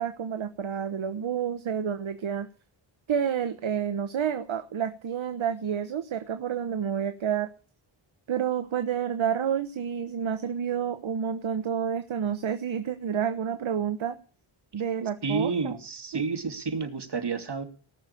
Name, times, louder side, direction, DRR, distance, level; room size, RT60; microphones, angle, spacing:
voice 1, 0.0-2.5 3.1-7.5 8.3-14.2 14.7-15.7 16.1-16.2, right 8 dB, 70° right, 9 dB, 1.2 m, -29 dB
voice 2, 15.2-17.6, right 4 dB, 55° right, 6 dB, 2.8 m, -30 dB
18.5 x 6.7 x 8.5 m, 0.40 s
cardioid pair, 55°, 49 cm